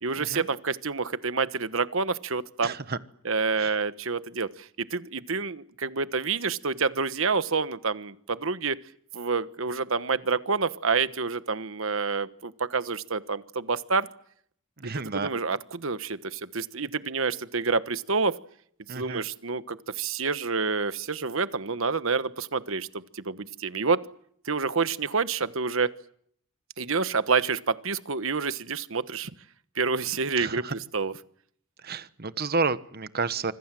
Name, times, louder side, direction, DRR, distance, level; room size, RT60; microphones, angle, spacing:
voice 1, 0.0-2.7 3.2-8.8 9.1-14.1 14.8-18.4 18.9-24.0 24.5-25.9 26.8-29.3 29.7-31.1, right 4 dB, 70° right, 13 dB, 1.3 m, -28 dB
voice 2, 2.6-3.0 3.6-3.7 14.8-15.3 18.9-19.2 30.4-30.7 31.8-33.5, right 4 dB, 50° right, 13 dB, 1.3 m, -30 dB
26.5 x 25.5 x 7.7 m, 0.66 s
head